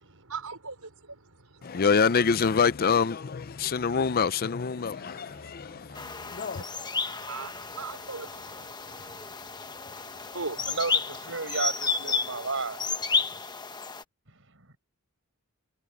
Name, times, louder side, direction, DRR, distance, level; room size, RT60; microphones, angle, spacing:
voice 1, 0.1-1.9 3.5-4.2 4.5-10.8, right 4 dB, 85° right, 4.6 m, -43 dB
voice 2, 1.6-6.6, left 5 dB, 45° left, 0.5 m, -26 dB
voice 3, 4.9-5.5 5.9-6.0 6.6-7.4 8.9-9.3 9.9-10.2 10.7-12.8 14.5-14.8, right 4 dB, 65° right, 8.0 m, -35 dB
sound 1, 6.0-14.0, left 4 dB, 20° left, 1.1 m, -32 dB
head